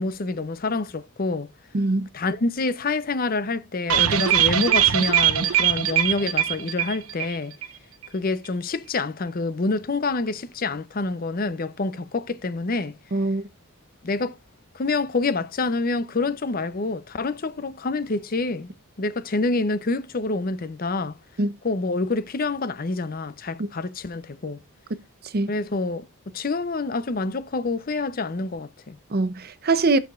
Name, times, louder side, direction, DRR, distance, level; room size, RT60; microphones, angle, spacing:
voice 1, 0.0-1.5 2.1-7.5 8.1-13.0 14.0-14.4 14.7-21.2 21.6-24.6 25.5-26.0 26.3-29.0, left 3 dB, 40° left, 0.6 m, -27 dB
voice 2, 1.7-2.1 13.1-13.4 21.4-21.5 23.6-23.7 25.3-25.5 29.1-30.0, right 3 dB, 45° right, 0.6 m, -22 dB
sound 1, 3.9-7.4 7.6-7.7 8.0-8.1, right 10 dB, 80° right, 0.8 m, -21 dB
16.5 x 5.7 x 2.4 m
head